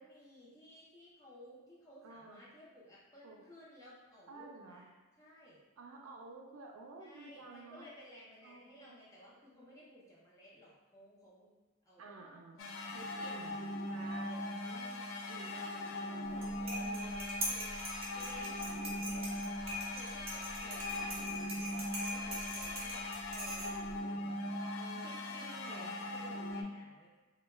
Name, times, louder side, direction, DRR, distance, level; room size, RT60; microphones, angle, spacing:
voice 1, 0.0-4.9 5.2-5.6 7.0-11.5 11.8-12.0 12.6-13.4 14.0-14.3 15.4-17.8 18.1-19.5 19.9-24.5 25.0-27.1, equal, 15° left, -8 dB, 0.6 m, -57 dB
voice 2, 2.0-2.4 3.2-3.5 4.3-4.9 5.8-7.9 8.4-8.9 12.0-12.6 12.9-16.2 16.8-17.4 19.0-19.7 24.7-26.0, right 3 dB, 80° right, 2 dB, 0.4 m, -52 dB
sound 1, 12.6-26.6, left 1 dB, 70° left, 0.3 m, -40 dB
sound 2, 16.3-24.0, equal, 30° right, 0.6 m, -42 dB
2.2 x 2.1 x 3.1 m, 1.3 s
head